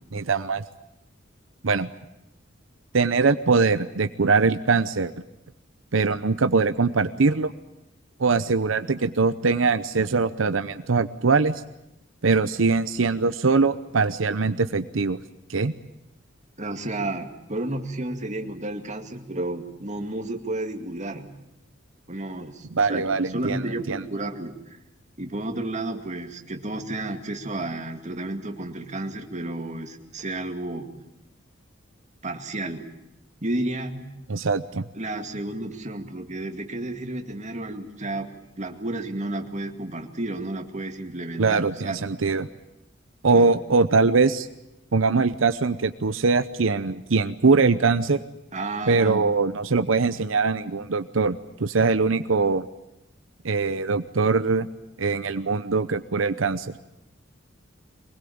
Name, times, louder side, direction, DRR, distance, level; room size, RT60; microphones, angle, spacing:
voice 1, 0.1-0.6 1.6-1.9 2.9-5.1 5.9-7.5 8.2-11.6 12.2-15.2 15.5-15.7 22.7-24.0 34.3-34.8 41.4-42.5 43.2-44.5 44.9-48.2 48.9-52.6 53.4-54.7 55.0-56.7, right 4 dB, 85° right, 11 dB, 0.8 m, -22 dB
voice 2, 16.6-21.3 22.1-24.6 25.2-30.9 32.2-32.9 33.4-34.1 34.9-38.3 38.6-42.0 43.3-43.5 48.5-49.3, right 2 dB, 40° right, 5 dB, 2.2 m, -32 dB
23.5 x 20.5 x 8.7 m, 0.88 s
head